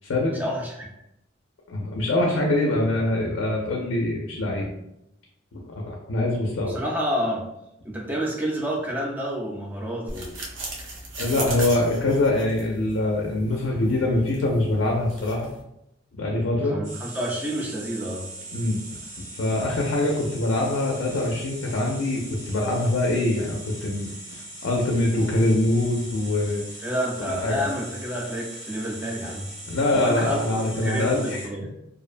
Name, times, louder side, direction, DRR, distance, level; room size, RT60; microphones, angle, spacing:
voice 1, 0.4-0.9 6.7-7.5 7.8-10.3 11.3-11.8 16.7-18.3 26.8-29.5 29.9-31.7, equal, 10° right, -3 dB, 0.4 m, -29 dB
voice 2, 1.7-4.7 5.5-6.8 11.1-15.5 16.2-16.8 18.5-18.8 19.2-26.6 27.3-27.7 29.7-31.5, left 2 dB, 80° left, -1 dB, 0.4 m, -24 dB
sound 1, 10.1-15.6, right 2 dB, 90° right, 0.6 m, -38 dB
sound 2, 16.8-31.5, right 1 dB, 50° right, 1.4 m, -40 dB
2.5 x 2.1 x 2.4 m, 0.82 s
head